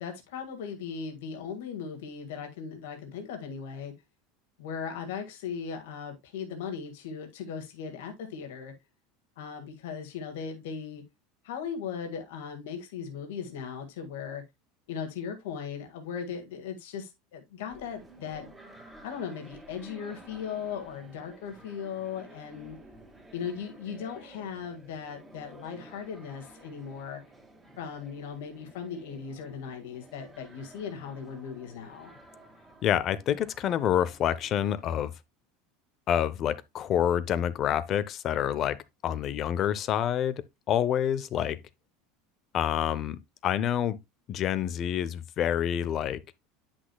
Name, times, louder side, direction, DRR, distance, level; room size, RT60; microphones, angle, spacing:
voice 1, 0.0-3.9 4.6-8.7 9.4-11.0 11.4-14.4 14.9-18.5 19.0-22.8 23.3-27.2 27.8-32.1, left 7 dB, 90° left, 1.9 m, -38 dB
sound 1, 17.7-35.0, right 1 dB, 10° right, 2.3 m, -53 dB
voice 2, 32.8-35.1 36.1-38.8 39.0-41.6 42.5-44.0 44.3-46.2, left 10 dB, 35° left, 0.6 m, -27 dB
10.0 x 6.3 x 2.3 m
supercardioid pair, 160°, 0 cm